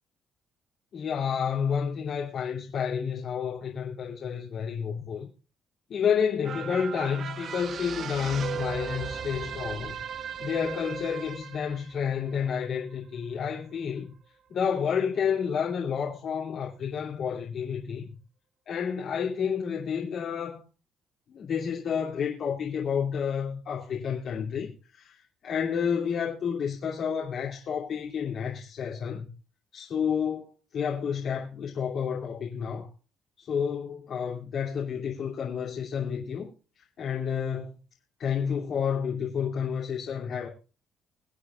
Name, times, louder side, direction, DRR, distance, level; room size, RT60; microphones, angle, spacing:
voice 1, 0.9-5.3 5.9-14.1 14.5-18.0 18.7-20.6 21.3-29.3 29.7-32.9 33.4-36.5 36.8-37.8 38.2-40.5, left 7 dB, 60° left, 2.8 m, -30 dB
sound 1, 6.4-13.1 13.5-13.6, right 7 dB, 55° right, 1.1 m, -37 dB
23.5 x 8.4 x 2.4 m
cardioid pair, 105°, 0 cm